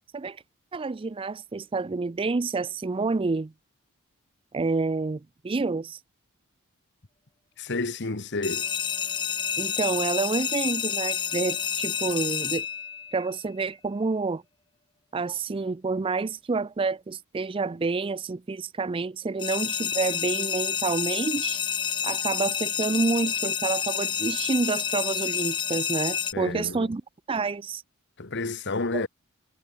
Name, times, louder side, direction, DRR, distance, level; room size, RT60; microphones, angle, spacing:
voice 1, 0.7-3.5 4.5-6.0 9.6-12.7 13.1-14.4 15.1-21.6 22.0-27.0 27.3-27.8 28.9-29.1, right 3 dB, 25° right, 0.4 m, -28 dB
voice 2, 7.6-8.7 26.3-26.9 28.2-29.1, left 3 dB, 55° left, 1.4 m, -30 dB
sound 1, 8.4-13.3 19.4-26.3, left 7 dB, 20° left, 0.6 m, -29 dB
head